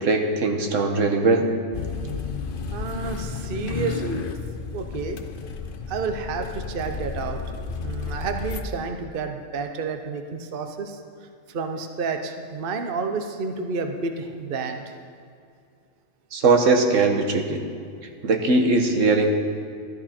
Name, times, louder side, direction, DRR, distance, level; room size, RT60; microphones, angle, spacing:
voice 1, 0.0-1.5 16.3-17.6 18.2-19.3, right 3 dB, 75° right, 3 dB, 1.4 m, -20 dB
sound 1, 1.7-8.6, left 5 dB, 50° left, 0.8 m, -32 dB
voice 2, 2.7-4.3 4.7-5.2 5.9-7.4 7.8-11.0 11.5-14.8, right 4 dB, 50° right, 5 dB, 0.9 m, -30 dB
13.5 x 13.5 x 4.4 m, 2.3 s
omnidirectional pair, 1.3 m